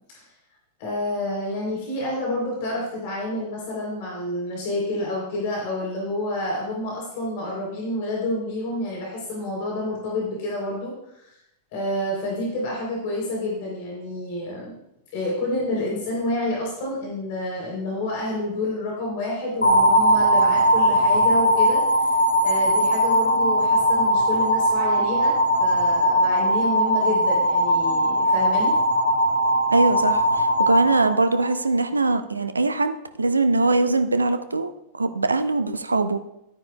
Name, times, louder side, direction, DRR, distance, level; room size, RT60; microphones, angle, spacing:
voice 1, 0.8-11.4 11.7-14.7 15.1-21.8 22.4-25.3 25.6-28.7, left 1 dB, 50° left, -3 dB, 3.3 m, -28 dB
sound 1, 19.6-31.8, equal, 80° left, 1.3 m, -20 dB
voice 2, 29.7-36.2, right 3 dB, 80° right, 10 dB, 0.6 m, -22 dB
13.0 x 9.3 x 2.2 m, 0.83 s
figure-of-eight pair, 90°, 0 cm